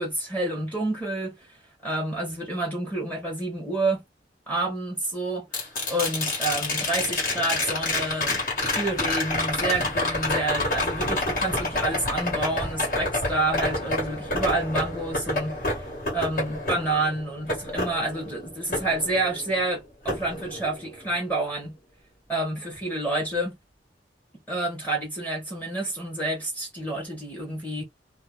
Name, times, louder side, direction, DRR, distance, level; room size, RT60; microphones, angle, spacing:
voice 1, 0.0-1.6 1.8-4.0 4.5-8.4 8.7-15.8 16.1-21.8 22.3-23.6 24.5-27.8, right 2 dB, 10° left, 0.9 m, -29 dB
sound 1, 5.5-19.6 20.1-21.1 23.3-23.4, left 2 dB, 50° left, 1.3 m, -28 dB
2.5 x 2.1 x 3.1 m
head